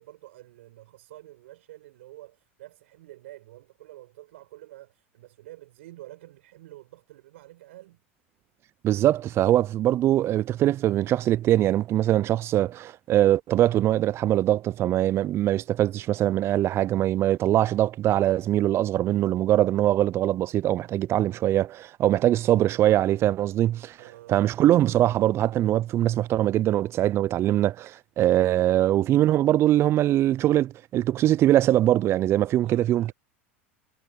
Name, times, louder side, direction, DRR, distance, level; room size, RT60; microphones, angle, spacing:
voice 1, 0.0-8.0 22.0-22.2 24.0-24.4 32.6-33.1, right 16 dB, 75° right, 6.6 m, -48 dB
voice 2, 8.8-24.0 24.3-33.1, right 13 dB, 40° right, 0.3 m, -22 dB
hypercardioid pair, 90°, 7 cm